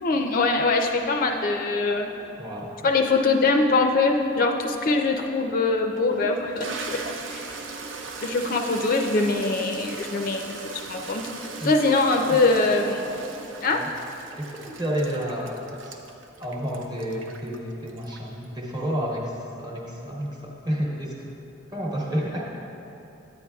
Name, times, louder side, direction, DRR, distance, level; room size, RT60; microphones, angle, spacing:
voice 1, 0.0-2.1 2.8-7.1 7.3-7.5 8.2-10.5 10.9-11.2 11.6-13.0 13.6-13.8, left 3 dB, 45° left, 3 dB, 0.4 m, -22 dB
voice 2, 2.4-2.8 11.6-11.7 12.3-12.4 13.7-13.9 14.4-16.0 16.4-21.3 21.7-22.6, equal, 20° right, -3 dB, 0.9 m, -30 dB
Toilet flush, 5.3-5.4 6.0-18.4, right 4 dB, 75° right, 0.6 m, -38 dB
9.8 x 8.6 x 2.3 m, 3.0 s
head